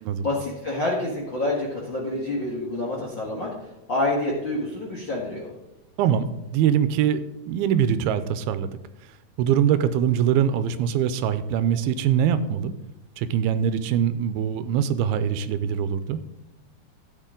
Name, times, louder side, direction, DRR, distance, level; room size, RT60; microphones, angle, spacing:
voice 1, 0.1-3.5 3.9-5.5, left 2 dB, 50° left, -3 dB, 1.5 m, -27 dB
voice 2, 6.0-7.2 7.5-8.7 9.0-9.1 9.4-12.7 13.2-16.2, right 9 dB, 85° right, 12 dB, 2.5 m, -23 dB
13.5 x 8.7 x 3.8 m, 0.93 s
omnidirectional pair, 4.5 m